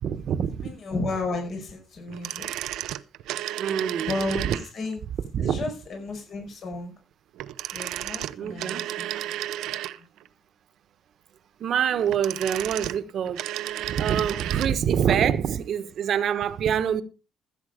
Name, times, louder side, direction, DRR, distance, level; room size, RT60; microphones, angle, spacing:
voice 1, 0.0-0.7 3.6-4.1 4.4-4.6 5.3-5.6 8.3-8.8 11.6-13.4 13.9-17.0, right 8 dB, 65° right, 1.1 m, -25 dB
voice 2, 0.6-2.5 4.0-5.0 5.4-6.9 7.7-9.4 10.0-10.1, left 2 dB, 55° left, 5.3 m, -33 dB
sound 1, 2.1-4.9 7.4-10.3 11.9-14.8 15.0-15.1, right 13 dB, 90° right, 0.6 m, -33 dB
15.0 x 7.8 x 5.0 m
cardioid pair, 90°, 0 cm